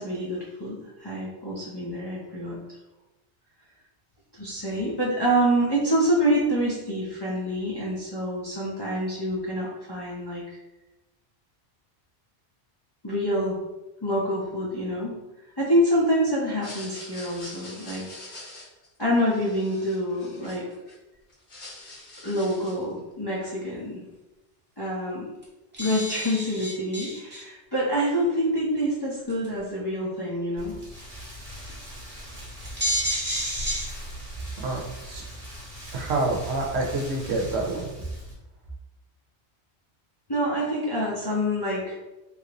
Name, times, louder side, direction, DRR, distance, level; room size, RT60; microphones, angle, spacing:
voice 1, 0.0-2.6 4.3-10.6 13.0-13.6 14.0-15.1 15.6-18.1 19.0-20.6 22.2-24.0 24.8-25.3 25.8-30.8 40.3-42.0, equal, 30° left, -7 dB, 0.5 m, -26 dB
sound 1, 16.5-20.9 21.3-22.9, left 2 dB, 60° left, 1.3 m, -44 dB
sound 2, 25.1-25.2 25.4-25.5 25.7-27.4 28.2-28.3 29.3-29.6 31.7-31.8 32.2-32.3 32.6-33.8, equal, 10° right, 0.8 m, -29 dB
Rain, 30.6-38.3, equal, 35° right, 1.1 m, -40 dB
voice 2, 34.6-35.2 35.9-38.1, right 2 dB, 70° right, 0 dB, 0.9 m, -28 dB
3.1 x 2.5 x 2.9 m, 1.0 s
omnidirectional pair, 1.1 m